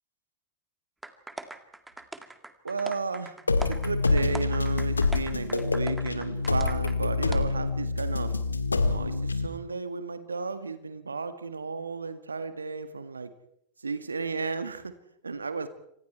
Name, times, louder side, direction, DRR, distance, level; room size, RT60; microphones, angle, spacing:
sound 1, 1.0-7.0 7.3-7.4, right 2 dB, 5° right, 2.1 m, -41 dB
voice 1, 2.6-3.4 3.6-8.4 8.8-13.3 13.8-14.9 15.2-15.7, right 4 dB, 75° right, 11 dB, 1.8 m, -33 dB
sound 2, 3.5-9.5, left 3 dB, 80° left, 1.8 m, -26 dB
28.5 x 26.0 x 4.6 m, 0.75 s
figure-of-eight pair, 90°, 0 cm